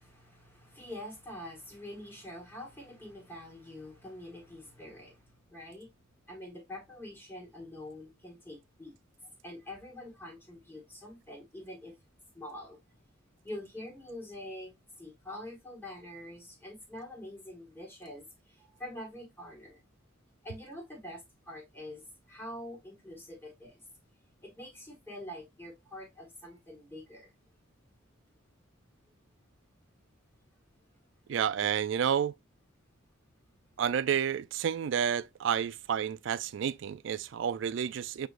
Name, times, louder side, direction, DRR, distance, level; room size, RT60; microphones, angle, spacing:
voice 1, 0.0-5.9 6.3-8.9 9.4-12.0 12.3-12.8 13.4-19.8 20.4-23.8 24.4-27.3, left 1 dB, 10° left, 1.3 m, -45 dB
voice 2, 31.3-32.3 33.8-38.3, right 8 dB, 65° right, 0.3 m, -30 dB
6.1 x 2.9 x 2.4 m
head